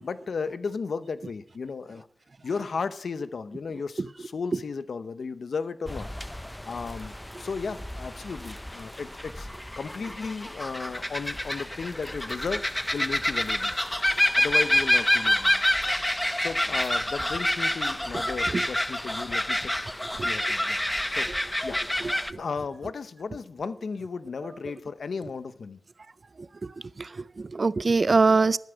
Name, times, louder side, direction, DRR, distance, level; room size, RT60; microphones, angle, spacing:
voice 1, 0.0-2.1 2.4-6.1 6.6-9.5 9.8-12.6 12.9-13.8 14.3-15.7 16.4-19.7 20.2-20.8 21.1-21.3 21.6-21.8 22.4-25.8, left 5 dB, 85° left, 14 dB, 0.8 m, -34 dB
sound 1, 5.9-22.3, left 1 dB, 10° left, 0.6 m, -28 dB
voice 2, 27.0-28.6, right 3 dB, 55° right, 19 dB, 0.5 m, -23 dB
13.0 x 9.3 x 7.9 m, 0.65 s
wide cardioid pair, 70°, 0 cm